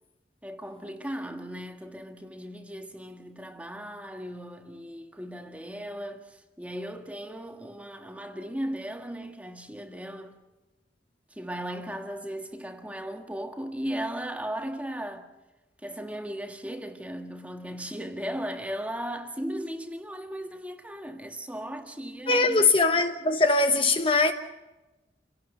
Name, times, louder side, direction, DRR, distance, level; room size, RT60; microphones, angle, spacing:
voice 1, 0.4-10.4 11.3-15.3 15.8-22.7, equal, 10° right, 1.7 m, -37 dB
voice 2, 22.3-24.3, left 3 dB, 30° left, 1.1 m, -21 dB
28.5 x 17.5 x 6.6 m
head